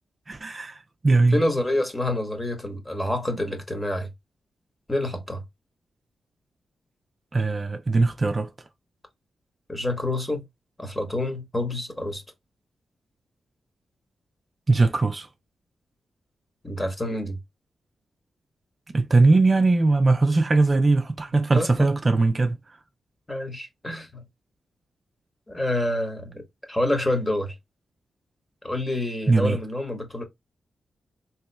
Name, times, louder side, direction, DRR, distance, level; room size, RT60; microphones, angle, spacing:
voice 1, 0.3-1.4 7.3-8.5 14.7-15.3 18.9-22.6 29.3-29.6, right 3 dB, 40° right, 0.5 m, -20 dB
voice 2, 1.3-4.1 4.9-5.4 9.7-10.4 10.8-12.2 16.6-17.4 21.5-21.9 23.3-24.2 25.5-26.4 26.7-27.5 28.6-30.2, left 1 dB, 20° left, 1.3 m, -27 dB
3.4 x 3.0 x 2.2 m
cardioid pair, 70°, 0 cm